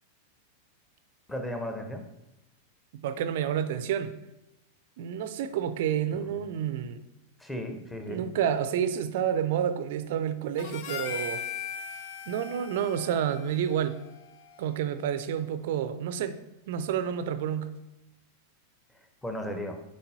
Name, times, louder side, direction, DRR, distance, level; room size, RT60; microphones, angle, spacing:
voice 1, 1.3-2.0 6.1-6.4 7.4-8.2 19.2-19.8, equal, 5° left, 4 dB, 0.9 m, -35 dB
voice 2, 3.0-4.1 5.0-7.0 8.1-11.5 12.3-14.0 14.6-16.4 16.7-17.7, right 9 dB, 55° right, 11 dB, 0.4 m, -29 dB
Harmonica, 10.6-15.1, left 7 dB, 45° left, 0.5 m, -40 dB
9.5 x 3.9 x 2.7 m, 0.93 s
figure-of-eight pair, 90°, 0 cm